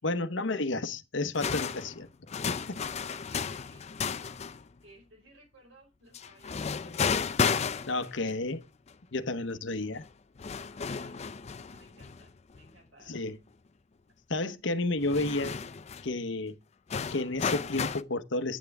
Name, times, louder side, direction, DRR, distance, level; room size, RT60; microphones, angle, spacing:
voice 1, 0.0-2.1 2.5-2.8 7.9-8.6 9.1-10.0 13.1-13.4 14.3-15.6 16.0-16.6 17.1-18.6, left 2 dB, 75° left, 1.0 m, -31 dB
sound 1, 1.3-4.7 6.1-8.3 8.9-9.0 10.0-10.1 10.4-12.7 13.1-13.2 15.0-16.1 16.9-18.0, left 6 dB, 35° left, 0.5 m, -33 dB
voice 2, 3.1-4.4 4.8-7.4 10.7-11.2 11.6-13.2, right 2 dB, 85° right, 5.2 m, -59 dB
9.3 x 8.3 x 3.5 m
head